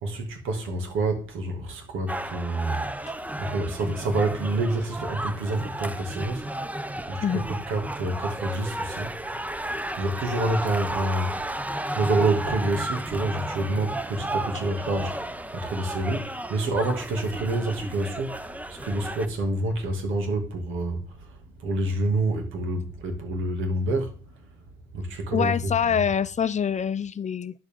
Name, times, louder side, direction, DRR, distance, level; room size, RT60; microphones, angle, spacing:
voice 1, 0.0-2.9 3.4-6.7 7.0-9.2 10.0-24.2 24.9-26.0, right 2 dB, 85° right, 2.4 m, -28 dB
sound 1, 2.1-19.3, right 1 dB, 5° right, 0.7 m, -33 dB
voice 2, 25.3-27.5, left 7 dB, 35° left, 0.6 m, -25 dB
10.5 x 7.0 x 3.7 m
cardioid pair, 90°, 20 cm